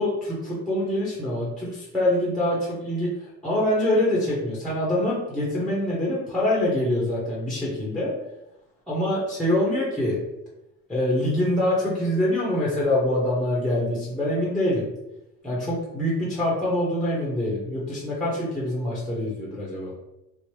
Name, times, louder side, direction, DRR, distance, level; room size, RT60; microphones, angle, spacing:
voice 1, 0.0-8.1 8.9-10.2 10.9-14.8 15.4-19.9, left 1 dB, ahead, -6 dB, 0.7 m, -25 dB
3.1 x 2.0 x 2.9 m, 0.91 s
cardioid pair, 120°, 36 cm